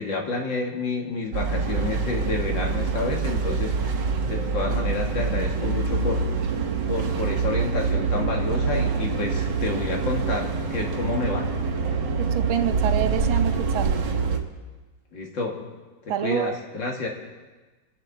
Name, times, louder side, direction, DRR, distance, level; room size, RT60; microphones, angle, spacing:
voice 1, 0.0-6.3 6.9-11.5 15.1-15.6 16.2-17.1, left 3 dB, 70° left, 0 dB, 2.8 m, -29 dB
sound 1, 1.3-14.4, right 5 dB, 65° right, 1.9 m, -25 dB
voice 2, 12.2-14.0 16.1-16.5, right 10 dB, 90° right, 8 dB, 1.6 m, -27 dB
26.5 x 10.5 x 4.2 m, 1.3 s
omnidirectional pair, 2.1 m